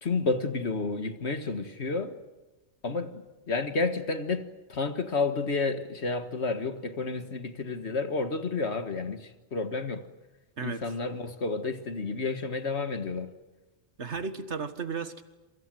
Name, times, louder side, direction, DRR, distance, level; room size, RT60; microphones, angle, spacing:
voice 1, 0.0-2.2 2.8-3.1 3.5-4.4 4.7-10.0 10.6-13.3, left 3 dB, 70° left, 2.0 m, -30 dB
voice 2, 14.0-15.2, right 5 dB, 75° right, 2.0 m, -34 dB
28.0 x 24.0 x 7.8 m
omnidirectional pair, 1.2 m